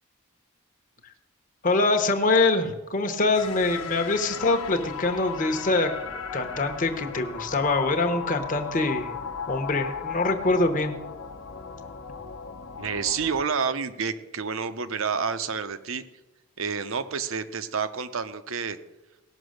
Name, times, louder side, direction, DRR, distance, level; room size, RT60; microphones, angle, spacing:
voice 1, 1.6-5.9 6.3-9.1 9.5-10.9, left 3 dB, 35° left, 5 dB, 1.0 m, -24 dB
sound 1, 3.3-13.4, left 6 dB, 65° left, 1.0 m, -36 dB
voice 2, 12.8-16.0 16.6-18.8, right 6 dB, 65° right, 12 dB, 0.7 m, -29 dB
17.5 x 6.1 x 6.5 m, 1.0 s
head